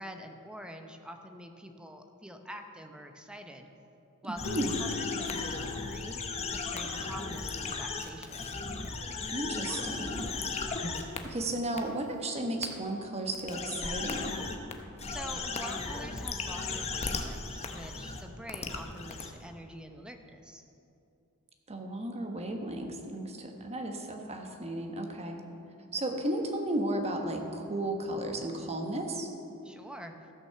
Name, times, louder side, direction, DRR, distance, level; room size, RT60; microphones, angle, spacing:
voice 1, 0.0-3.7 4.2-6.2 6.5-8.4 15.1-20.6 29.6-30.1, equal, 5° right, 5 dB, 0.7 m, -45 dB
sound 1, 4.4-11.0 11.4-11.9, left 6 dB, 65° left, 0.5 m, -45 dB
sound 2, 4.4-11.2 11.8-11.9 12.6-12.7 13.3-14.7 15.0-19.3, left 4 dB, 30° left, 0.8 m, -36 dB
voice 2, 4.5-4.8 9.3-10.3 10.9-14.3 21.7-25.4 25.9-29.3, right 1 dB, 30° right, 3 dB, 1.2 m, -34 dB
14.0 x 6.0 x 6.8 m, 2.8 s
head